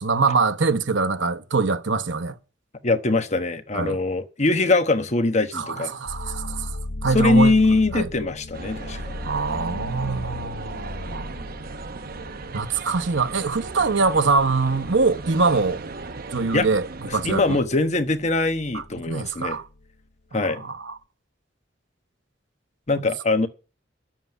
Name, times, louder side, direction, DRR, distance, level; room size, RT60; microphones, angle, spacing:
voice 1, 0.0-2.4 3.7-4.0 5.5-6.7 7.0-7.6 7.9-8.1 9.2-11.3 12.5-15.8 16.3-16.8 17.1-17.6 18.7-19.7 20.3-21.0, right 4 dB, 80° right, 1.0 m, -23 dB
voice 2, 2.8-5.9 7.1-9.2 16.5-16.7 17.1-19.6 20.3-20.6 22.9-23.5, left 3 dB, 40° left, 1.1 m, -22 dB
sound 1, 6.1-19.9, left 2 dB, 60° left, 0.7 m, -38 dB
sound 2, 8.5-17.6, right 3 dB, 50° right, 0.9 m, -37 dB
11.0 x 7.5 x 7.9 m
head